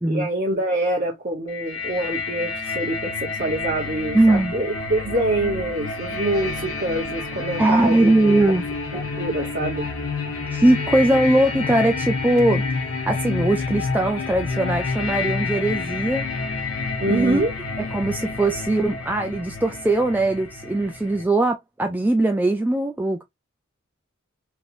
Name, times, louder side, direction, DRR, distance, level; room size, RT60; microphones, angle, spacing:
voice 1, 0.0-8.1 8.4-8.6 8.9-9.9 17.0-17.5, right 1 dB, 40° right, 0.9 m, -25 dB
sound 1, 1.5-21.2, left 4 dB, 80° left, 1.1 m, -29 dB
voice 2, 4.1-4.5 7.6-8.6 10.5-12.6 13.1-16.3 17.1-17.4 17.9-23.2, right 1 dB, 10° right, 0.3 m, -20 dB
3.1 x 2.9 x 2.5 m
head